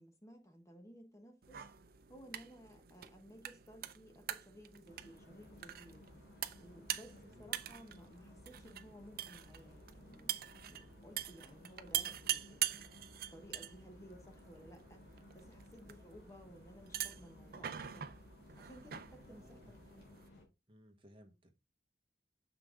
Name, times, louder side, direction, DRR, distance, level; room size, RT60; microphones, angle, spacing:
voice 1, 0.0-1.6 2.1-6.0 6.6-10.3 10.7-12.9 13.3-15.0 15.3-18.1 18.6-20.1, equal, 15° left, 1.1 m, -57 dB
sound 1, 1.4-20.3, right 11 dB, 55° right, 0.5 m, -44 dB
sound 2, 4.9-20.4, left 1 dB, 65° left, 3.0 m, -59 dB
voice 2, 7.1-7.5 19.3-19.7 20.7-21.5, equal, 30° right, 1.2 m, -61 dB
6.7 x 5.8 x 3.7 m
head